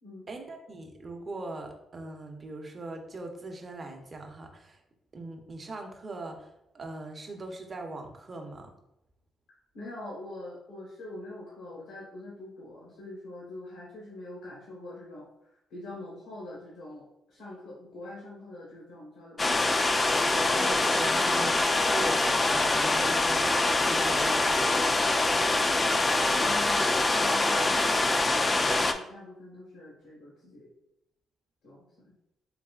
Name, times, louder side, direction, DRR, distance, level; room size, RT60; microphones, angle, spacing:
voice 1, 0.3-4.8 5.1-8.7 20.4-24.8, right 2 dB, 35° right, 3 dB, 0.7 m, -40 dB
voice 2, 9.7-19.9 21.1-21.3 26.4-30.7 31.6-32.1, left 1 dB, 90° left, -5 dB, 1.2 m, -44 dB
sound 1, 19.4-28.9, left 2 dB, 25° left, 0.3 m, -24 dB
4.0 x 3.2 x 2.3 m, 0.82 s
cardioid pair, 90°, 0 cm